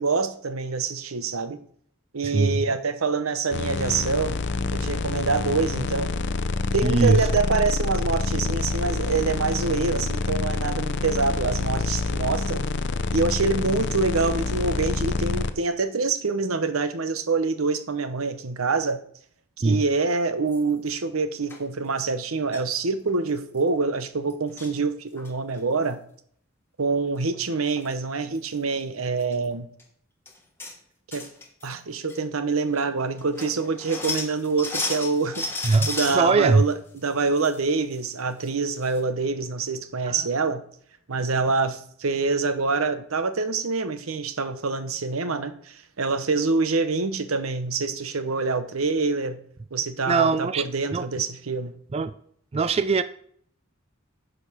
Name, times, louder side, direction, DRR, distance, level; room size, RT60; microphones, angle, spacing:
voice 1, 0.0-1.6 2.1-4.4 4.7-6.1 6.7-12.7 13.1-19.0 19.6-26.0 26.8-29.7 31.1-31.2 31.6-40.6 41.1-49.4 49.7-51.7, right 4 dB, 90° right, 0.9 m, -26 dB
voice 2, 2.2-2.6 6.8-7.3 19.6-19.8 35.6-36.6 40.1-40.3 50.1-50.6 50.9-51.0 51.9-52.1 52.5-53.0, right 4 dB, 30° right, 0.3 m, -21 dB
sound 1, 3.5-15.5, left 3 dB, 55° left, 0.6 m, -27 dB
sound 2, 20.5-20.9 21.5-21.6 22.5-22.7 23.1-23.2 23.4-23.6 24.3-24.8 25.2-25.6 27.3-27.4 27.7-27.9 28.4-28.5 29.2-29.4 29.8-29.9 30.3-30.8 31.1-31.8 32.1-32.2 32.8-32.9 33.2-36.2 36.7-37.6 37.9-38.0 38.4-38.5 38.8-39.0, left 3 dB, 10° left, 1.3 m, -33 dB
10.0 x 5.3 x 6.2 m
head